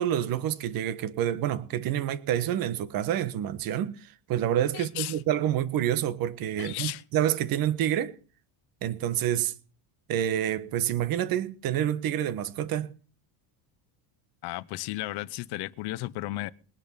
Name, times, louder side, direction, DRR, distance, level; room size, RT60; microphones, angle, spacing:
voice 1, 0.0-8.2 8.8-9.5 10.1-12.9, right 11 dB, 45° right, 1.4 m, -28 dB
voice 2, 4.7-5.2 6.6-7.0 14.4-16.5, left 18 dB, 50° left, 0.9 m, -34 dB
21.5 x 10.5 x 5.8 m
cardioid pair, 175°, 49 cm